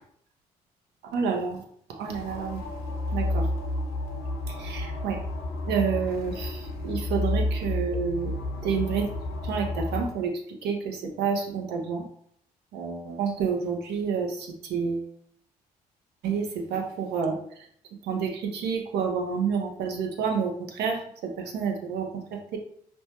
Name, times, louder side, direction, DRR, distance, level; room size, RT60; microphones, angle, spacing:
voice 1, 1.1-1.6 1.9-2.6 3.1-3.5 4.5-5.2 5.6-9.1 9.4-12.0 12.7-15.1 16.2-17.7 18.0-22.6, right 6 dB, 60° right, 1 dB, 0.8 m, -29 dB
sound 1, 2.1-10.1, left 2 dB, 75° left, 0.8 m, -31 dB
5.2 x 2.3 x 2.9 m, 0.66 s
figure-of-eight pair, 45°, 19 cm